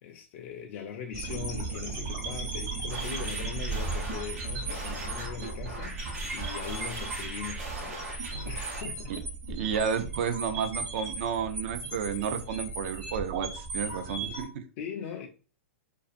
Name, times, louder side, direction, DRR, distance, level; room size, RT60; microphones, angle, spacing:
voice 1, 0.0-9.5 14.8-15.3, left 8 dB, 50° left, 0.3 m, -40 dB
sound 1, 1.1-14.4, right 3 dB, 40° right, 0.9 m, -36 dB
sound 2, 2.9-8.8, right 2 dB, 85° right, 0.8 m, -40 dB
voice 2, 9.5-14.6, right 7 dB, 55° right, 0.5 m, -31 dB
2.4 x 2.4 x 2.4 m
hypercardioid pair, 120°, 8 cm